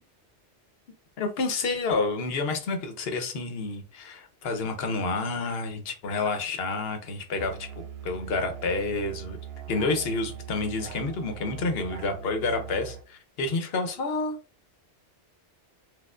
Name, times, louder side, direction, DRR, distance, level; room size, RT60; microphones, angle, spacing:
voice 1, 1.2-9.4 9.7-14.4, left 3 dB, 65° left, 0.9 m, -29 dB
Musical instrument, 7.4-13.1, right 9 dB, 70° right, 0.8 m, -41 dB
4.3 x 2.4 x 2.4 m
omnidirectional pair, 1.1 m